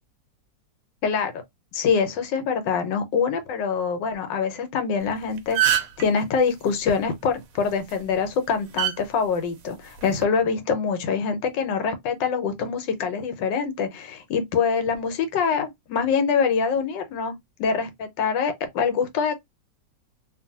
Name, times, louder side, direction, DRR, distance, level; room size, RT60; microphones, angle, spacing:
voice 1, 1.0-1.3 1.7-17.3 17.6-19.4, left 6 dB, 85° left, 1.4 m, -25 dB
sound 1, 5.0-5.1 5.4-6.0 7.7-7.9 8.8-8.9 10.0-10.2, right 13 dB, 70° right, 0.8 m, -22 dB
2.6 x 2.6 x 2.7 m
omnidirectional pair, 1.9 m